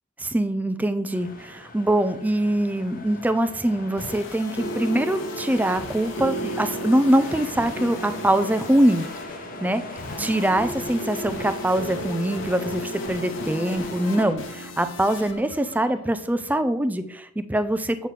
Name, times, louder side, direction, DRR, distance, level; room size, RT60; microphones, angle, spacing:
voice 1, 0.2-9.1 9.6-9.8 10.2-18.1, right 1 dB, 10° right, 10 dB, 0.4 m, -23 dB
sound 1, 1.1-14.3, left 2 dB, 45° left, 0.9 m, -39 dB
sound 2, 3.8-16.6, equal, 80° left, 1.1 m, -35 dB
8.3 x 6.2 x 3.3 m, 0.72 s
head